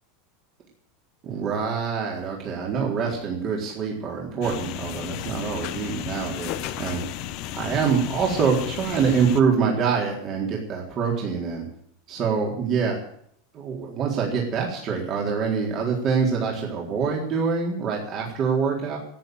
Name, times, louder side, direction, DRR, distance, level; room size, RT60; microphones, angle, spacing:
voice 1, 1.2-7.0 7.5-11.6 12.1-13.0 13.5-19.0, right 6 dB, 40° right, -2 dB, 4.0 m, -25 dB
sound 1, 4.4-9.4, left 13 dB, 55° left, 1.0 m, -34 dB
13.5 x 8.7 x 9.5 m, 0.67 s
supercardioid pair, 130°, 0 cm